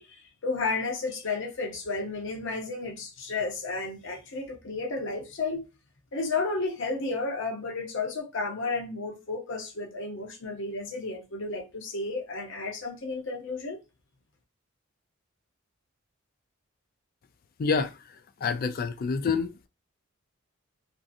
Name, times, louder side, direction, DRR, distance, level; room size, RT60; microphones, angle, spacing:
voice 1, 0.0-5.7 6.1-13.8, left 3 dB, 60° left, 0.7 m, -32 dB
voice 2, 17.6-18.0 18.4-19.7, left 5 dB, 45° left, 0.3 m, -27 dB
2.6 x 2.5 x 2.5 m
head